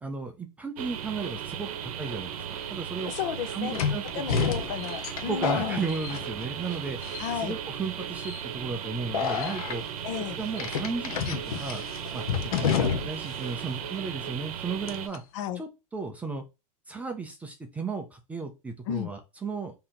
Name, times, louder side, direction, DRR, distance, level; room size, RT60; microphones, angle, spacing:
voice 1, 0.0-2.4 2.7-3.1 3.5-4.5 5.3-7.0 7.3-9.8 10.3-11.8 12.1-15.2 15.5-16.4 16.9-19.8, right 4 dB, 10° right, 0.4 m, -35 dB
sound 1, 0.8-15.1, right 9 dB, 85° right, 0.7 m, -36 dB
sound 2, 2.4-2.5 3.7-6.7 7.0-7.5 8.2-8.4 9.1-9.8 10.6-13.3 13.6-13.7 14.9-15.2, left 7 dB, 85° left, 0.8 m, -30 dB
voice 2, 3.0-3.7 4.1-5.8 7.2-7.6 10.0-10.4 12.6-12.8 15.3-15.6 18.9-19.1, left 9 dB, 55° left, 0.8 m, -33 dB
sound 3, 4.3-14.0, left 1 dB, 25° left, 1.1 m, -54 dB
3.8 x 2.8 x 4.2 m
supercardioid pair, 155°, 18 cm